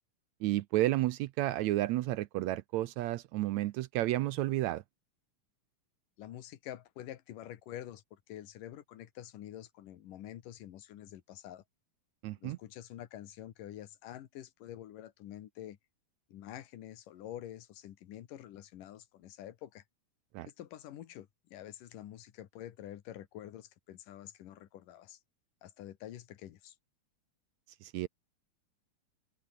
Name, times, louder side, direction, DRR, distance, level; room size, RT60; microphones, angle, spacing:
voice 1, 0.4-4.8 12.2-12.6 20.3-20.5 27.8-28.1, right 16 dB, 75° right, 1.8 m, -31 dB
voice 2, 6.2-11.6 12.4-15.8 16.3-19.8 20.5-25.2 25.6-26.7, left 12 dB, 90° left, 3.1 m, -47 dB
open air
omnidirectional pair, 3.7 m